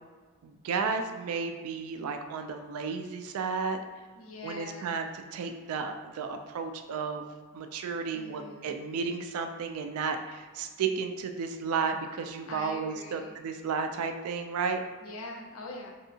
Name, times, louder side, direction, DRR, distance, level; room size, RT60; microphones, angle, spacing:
voice 1, 0.4-3.8 4.4-7.3 7.5-14.8, right 5 dB, 90° right, 6 dB, 0.3 m, -33 dB
voice 2, 4.2-5.0 8.1-8.8 12.5-13.3 15.0-15.9, left 2 dB, 70° left, 0 dB, 0.6 m, -43 dB
3.3 x 2.7 x 2.7 m, 1.4 s
head